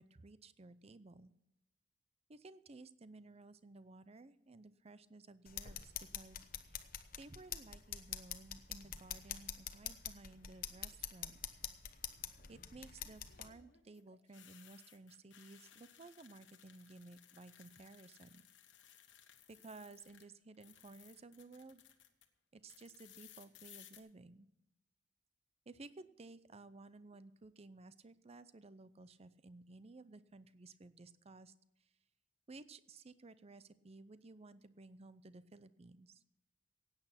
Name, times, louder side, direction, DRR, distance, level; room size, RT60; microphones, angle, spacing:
voice 1, 0.0-1.3 2.3-6.9 7.2-11.4 12.5-18.5 19.5-21.8 22.5-24.5 25.7-31.5 32.5-36.2, right 3 dB, 35° right, 15 dB, 0.6 m, -56 dB
sound 1, 5.5-13.5, left 9 dB, 50° left, 1.0 m, -46 dB
sound 2, 10.6-11.1 13.0-20.3 20.5-22.3 22.7-24.0, left 10 dB, 70° left, 1.3 m, -62 dB
16.5 x 9.0 x 5.8 m, 0.85 s
head